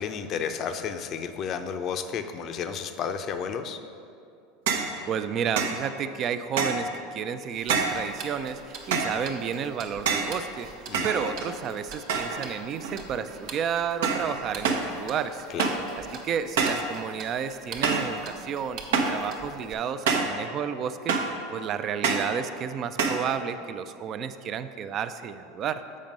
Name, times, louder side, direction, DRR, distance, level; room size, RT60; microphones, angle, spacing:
voice 1, 0.0-3.8 10.9-11.1 15.5-15.8, left 7 dB, 45° left, 8 dB, 0.5 m, -32 dB
sound 1, 4.7-5.0 5.6-5.8 6.6-6.9 7.7-8.1 8.9-9.2 10.1-10.4 10.9-11.6 12.1-12.5 12.8-13.3 14.0-14.3 14.6-14.9 15.6-15.9 16.6-16.9 17.8-18.2 18.9-19.2 20.1-20.4 21.1-21.4 22.0-22.3 23.0-23.3, right 4 dB, 80° right, 0.7 m, -26 dB
voice 2, 5.1-10.7 11.0-15.5 16.0-21.2 21.5-25.8, right 7 dB, 45° right, 11 dB, 0.4 m, -31 dB
Tick-tock, 7.5-19.7, right 4 dB, 60° right, 1.1 m, -44 dB
7.4 x 5.1 x 5.3 m, 2.5 s
hypercardioid pair, 100°, 0 cm